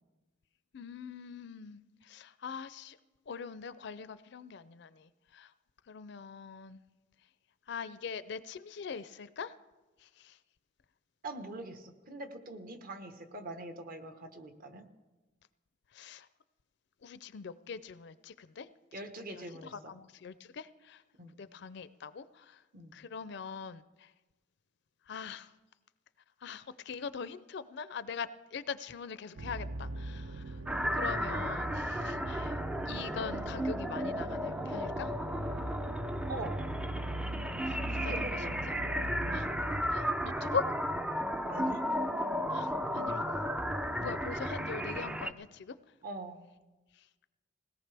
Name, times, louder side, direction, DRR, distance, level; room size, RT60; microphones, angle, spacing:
voice 1, 0.7-1.8 2.1-3.0 3.3-5.1 5.3-5.5 5.9-6.8 7.7-9.5 10.2-10.3 16.0-16.3 17.0-18.7 19.3-19.4 19.9-21.0 21.4-22.2 22.9-23.8 25.1-25.5 26.4-30.4 30.9-32.5 32.9-35.1 37.7-38.1 38.5-38.6 39.3-39.5 39.9-40.6 42.5-43.2 44.0-45.7, left 6 dB, 65° left, 15 dB, 0.5 m, -42 dB
voice 2, 11.2-14.9 18.9-19.9 21.2-21.3 22.7-22.9 36.3-36.6 38.0-38.6 39.2-39.5 41.5-41.8 44.0-44.2 46.0-46.4, right 2 dB, 50° right, 7 dB, 1.2 m, -43 dB
sound 1, 29.4-39.9, right 1 dB, 65° right, 0.5 m, -41 dB
sound 2, 30.7-45.3, equal, 5° right, 0.5 m, -34 dB
20.5 x 17.5 x 3.4 m, 1.2 s
head